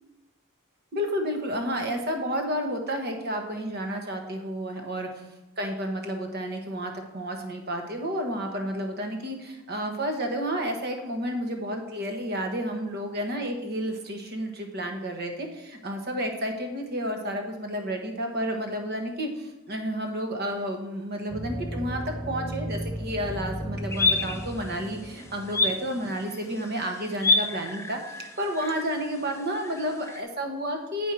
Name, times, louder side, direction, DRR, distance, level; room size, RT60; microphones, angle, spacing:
voice 1, 0.9-5.2 5.6-31.1, equal, 45° right, 4 dB, 1.2 m, -31 dB
sound 1, 21.3-26.1, right 1 dB, 5° right, 1.1 m, -35 dB
sound 2, 23.9-30.2, left 3 dB, 10° left, 0.5 m, -30 dB
9.9 x 4.5 x 4.8 m, 1.0 s
head